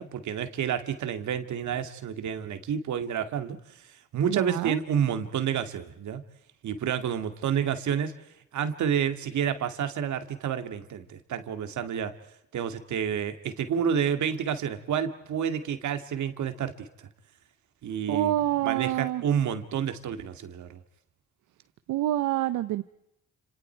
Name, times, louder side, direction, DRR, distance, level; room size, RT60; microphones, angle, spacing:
voice 1, 0.0-3.6 4.1-6.2 6.6-8.1 8.5-12.1 12.5-17.1 17.8-18.4 18.6-20.8, right 8 dB, 70° right, 8 dB, 2.5 m, -29 dB
voice 2, 4.3-4.8 18.1-19.2 21.9-22.8, right 14 dB, 90° right, 12 dB, 0.9 m, -27 dB
30.0 x 28.0 x 4.7 m, 0.82 s
cardioid pair, 90°, 30 cm